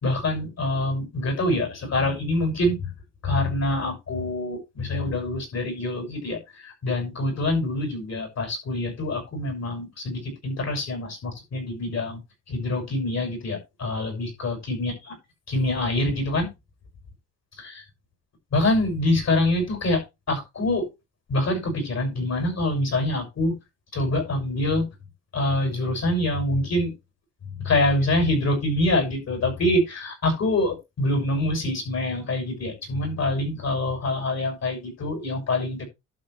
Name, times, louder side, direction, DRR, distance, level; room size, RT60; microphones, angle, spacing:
voice 1, 0.0-2.9 3.2-12.2 12.5-14.9 15.5-16.5 17.6-17.8 18.5-20.0 20.3-20.9 21.3-23.5 23.9-24.9 25.3-26.9 27.6-35.9, left 1 dB, 60° left, 6.4 m, -25 dB
11.5 x 7.5 x 3.3 m
cardioid pair, 90°, 30 cm